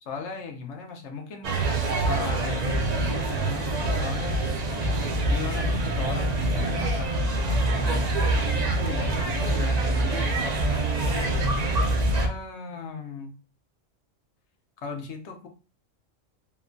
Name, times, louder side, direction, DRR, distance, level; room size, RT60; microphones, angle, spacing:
voice 1, 0.0-1.5 2.0-4.5 5.3-9.1 9.4-10.9 12.2-13.3 14.8-15.5, left 5 dB, 70° left, 3 dB, 0.8 m, -37 dB
sound 1, 1.4-12.3, right 2 dB, 80° right, 0.3 m, -25 dB
2.9 x 2.2 x 2.4 m, 0.35 s
omnidirectional pair, 1.3 m